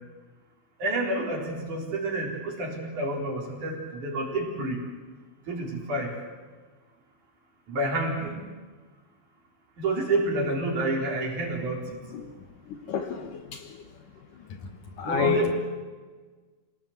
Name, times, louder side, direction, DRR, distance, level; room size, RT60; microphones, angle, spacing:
voice 1, 0.8-4.8 5.5-6.1 7.7-8.4 9.8-11.8 15.0-15.5, right 2 dB, 50° right, 0 dB, 5.4 m, -28 dB
voice 2, 12.7-13.8 15.0-15.5, left 6 dB, 65° left, 7 dB, 2.5 m, -29 dB
27.0 x 18.5 x 8.1 m, 1.4 s
omnidirectional pair, 4.6 m